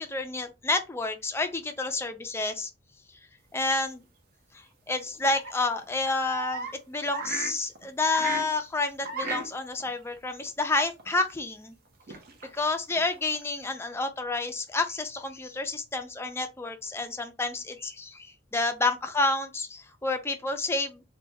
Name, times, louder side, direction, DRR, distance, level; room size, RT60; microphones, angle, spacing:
voice 1, 0.0-2.7 3.5-4.0 4.5-11.8 12.4-21.0, left 3 dB, 10° left, 0.3 m, -29 dB
sound 1, 3.6-3.7 5.2-6.7 7.1-8.5 9.0-9.5 9.8-9.9 11.0-11.1 12.0-13.4, right 3 dB, 50° right, 0.6 m, -35 dB
3.2 x 2.2 x 2.7 m
head